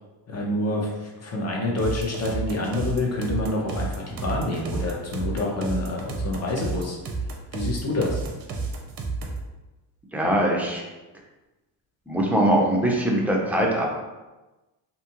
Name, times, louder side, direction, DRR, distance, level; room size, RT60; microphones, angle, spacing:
voice 1, 0.3-7.0 7.5-8.2, left 2 dB, 30° left, -1 dB, 0.7 m, -27 dB
sound 1, 1.8-9.5, right 3 dB, 50° right, 0.6 m, -31 dB
voice 2, 10.1-10.8 12.1-13.9, right 1 dB, 5° right, -2 dB, 0.5 m, -22 dB
2.8 x 2.3 x 2.8 m, 1.1 s
cardioid pair, 90°, 48 cm